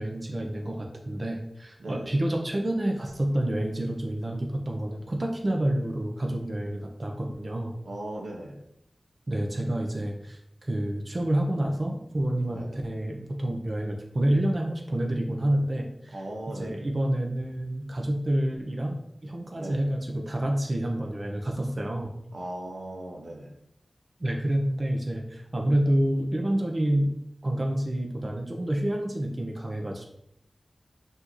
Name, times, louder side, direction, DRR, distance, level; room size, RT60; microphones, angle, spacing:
voice 1, 0.0-7.7 9.3-16.2 16.6-19.0 19.2-22.1 24.2-27.1 27.4-30.1, right 1 dB, 45° right, 2 dB, 0.7 m, -28 dB
voice 2, 1.8-2.1 7.8-8.6 12.4-12.8 16.1-16.8 19.6-19.9 22.3-23.5, right 1 dB, 80° right, 0 dB, 0.7 m, -38 dB
6.0 x 2.7 x 3.0 m, 0.75 s
wide cardioid pair, 60°, 0 cm